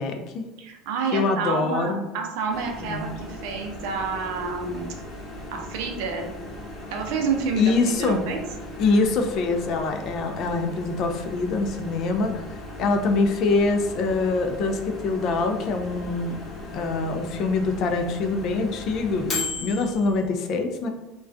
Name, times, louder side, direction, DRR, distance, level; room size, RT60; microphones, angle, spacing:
voice 1, 0.0-0.4 1.1-2.0 2.8-3.1 7.6-8.2 8.8-16.4 16.7-20.9, left 3 dB, 50° left, 5 dB, 0.3 m, -24 dB
voice 2, 0.6-4.9 5.5-6.3 6.9-8.4, right 5 dB, 75° right, 2 dB, 0.5 m, -29 dB
Microwave oven, 2.5-20.3, left 2 dB, 30° left, 0.7 m, -37 dB
2.3 x 2.2 x 2.5 m, 1.1 s
supercardioid pair, 115°, 0 cm